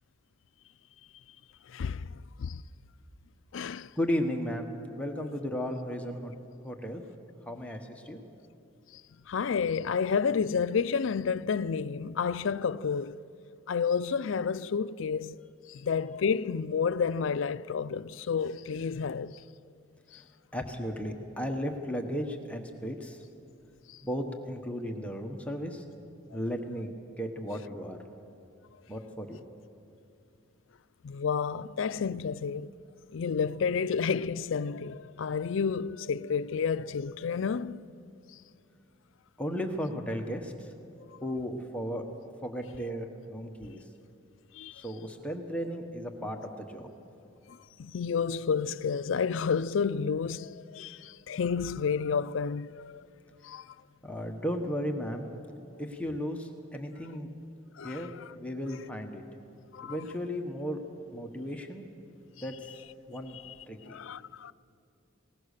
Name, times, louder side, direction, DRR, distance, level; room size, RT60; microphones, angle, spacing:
voice 1, 1.7-2.1 2.4-2.6 3.5-3.9 9.3-13.2 13.7-15.4 15.7-19.3 31.0-32.7 33.1-37.8 44.6-44.7 47.8-53.0 53.4-53.6 57.8-57.9 59.7-60.0 63.9-64.5, left 6 dB, 70° left, 0.4 m, -30 dB
voice 2, 4.0-6.3 6.6-7.0 7.5-8.2 20.1-20.2 20.5-23.2 24.0-25.8 26.3-28.0 28.9-29.4 39.4-40.7 41.2-42.0 42.4-43.8 44.7-46.9 54.0-55.3 55.8-57.3 57.8-59.2 59.8-60.8 61.1-61.8 62.4-62.7 63.1-63.4 63.7-64.0, equal, 5° left, 1.1 m, -35 dB
21.0 x 19.0 x 6.6 m
head